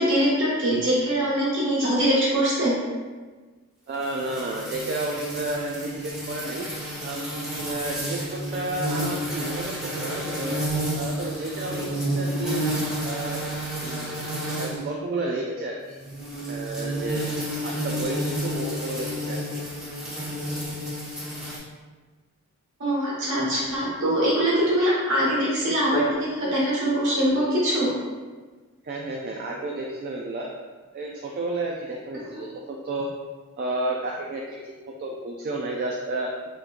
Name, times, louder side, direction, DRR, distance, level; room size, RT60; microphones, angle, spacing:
voice 1, 0.0-2.7 22.8-27.9 32.3-32.4, equal, 60° right, -7 dB, 1.4 m, -23 dB
voice 2, 3.9-6.7 7.0-10.6 10.9-12.6 13.0-13.5 13.8-14.1 14.6-16.0 16.5-17.3 17.6-19.6 28.8-30.5 30.9-33.1 33.6-36.3, right 2 dB, 45° right, -1 dB, 0.3 m, -31 dB
sound 1, 4.0-14.9 15.9-21.6, right 1 dB, 5° right, 1.0 m, -30 dB
3.6 x 3.0 x 2.4 m, 1.3 s
head